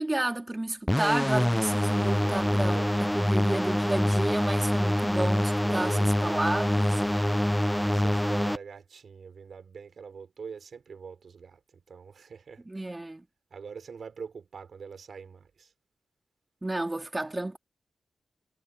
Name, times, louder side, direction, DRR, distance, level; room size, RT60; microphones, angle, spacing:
voice 1, 0.0-2.8 3.1-7.2 12.7-13.3 16.6-17.6, right 2 dB, 20° right, 2.7 m, -31 dB
sound 1, 0.9-8.6, left 1 dB, 5° left, 0.3 m, -25 dB
voice 2, 1.6-3.3 5.5-13.0 13.5-15.7, right 6 dB, 70° right, 4.0 m, -44 dB
cardioid pair, 70°, 0 cm